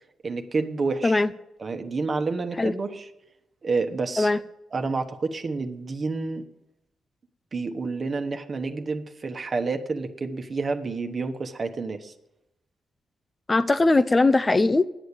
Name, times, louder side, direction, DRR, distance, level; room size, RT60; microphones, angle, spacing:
voice 1, 0.2-1.2 1.6-3.1 3.6-4.3 4.7-6.4 7.5-12.1, right 4 dB, 50° right, 1.2 m, -29 dB
voice 2, 13.5-14.9, left 2 dB, 30° left, 0.5 m, -20 dB
10.0 x 8.0 x 8.6 m
hypercardioid pair, 40°, 0 cm